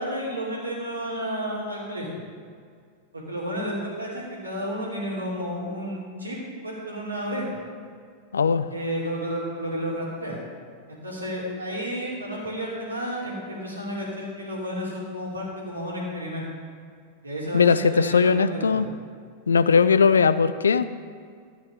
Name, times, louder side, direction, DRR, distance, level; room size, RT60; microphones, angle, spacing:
voice 1, 0.0-2.2 3.1-7.4 8.7-10.4 10.9-16.4 17.2-18.9, equal, 80° right, -3 dB, 2.5 m, -31 dB
voice 2, 8.3-8.7 17.5-18.9 19.5-21.0, left 5 dB, 70° left, 14 dB, 0.4 m, -19 dB
13.0 x 8.8 x 3.5 m, 2.1 s
figure-of-eight pair, 90°, 0 cm